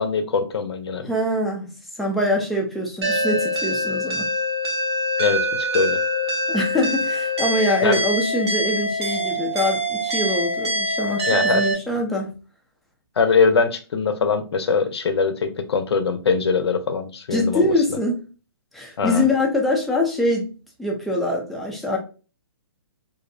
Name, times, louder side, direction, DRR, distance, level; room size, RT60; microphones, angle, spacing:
voice 1, 0.0-1.1 5.2-6.0 7.8-8.0 11.3-11.7 13.2-18.0 19.0-19.2, left 5 dB, 75° left, 0.6 m, -22 dB
voice 2, 1.1-4.3 6.5-12.4 17.3-18.2 18.7-20.5 20.8-22.0, left 1 dB, ahead, 0.3 m, -24 dB
sound 1, 3.0-11.7, equal, 80° right, 0.9 m, -24 dB
2.6 x 2.0 x 2.5 m
hypercardioid pair, 150°, 13 cm